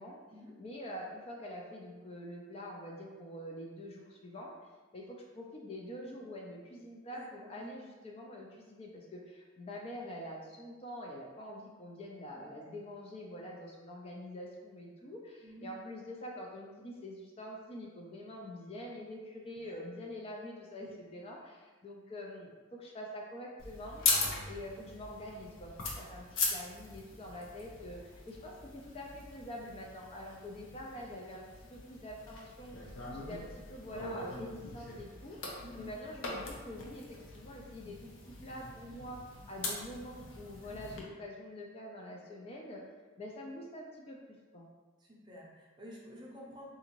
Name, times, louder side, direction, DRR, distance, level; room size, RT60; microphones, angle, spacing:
voice 1, 0.6-4.5 4.9-24.0 24.5-32.7 33.1-35.5 35.8-37.1 37.3-38.1 38.4-39.2 39.5-42.8 43.2-44.2 44.5-44.7, left 1 dB, 30° left, -1 dB, 0.4 m, -45 dB
voice 2, 7.1-7.7 12.3-12.5 15.4-15.8 19.6-19.8 20.8-21.0 35.6-35.8 45.0-46.7, equal, 25° right, -3 dB, 0.6 m, -51 dB
sound 1, 23.6-41.0, left 3 dB, 75° left, 0.6 m, -40 dB
3.7 x 2.5 x 2.9 m, 1.3 s
head